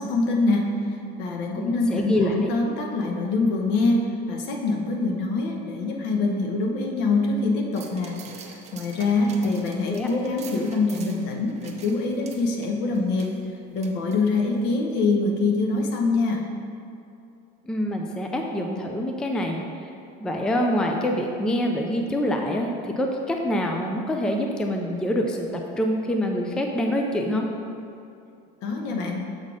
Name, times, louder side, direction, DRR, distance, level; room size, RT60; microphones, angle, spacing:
voice 1, 0.0-13.3 13.7-16.4 28.6-29.2, left 3 dB, 65° left, 1 dB, 1.0 m, -24 dB
voice 2, 1.6-2.3 9.2-9.5 9.9-10.1 17.6-19.9 20.2-25.5 25.8-27.4, equal, 5° left, 2 dB, 0.3 m, -26 dB
sound 1, 7.7-14.6 15.0-15.1, right 6 dB, 35° right, 0.6 m, -46 dB
7.3 x 4.1 x 4.9 m, 2.6 s
cardioid pair, 145°, 20 cm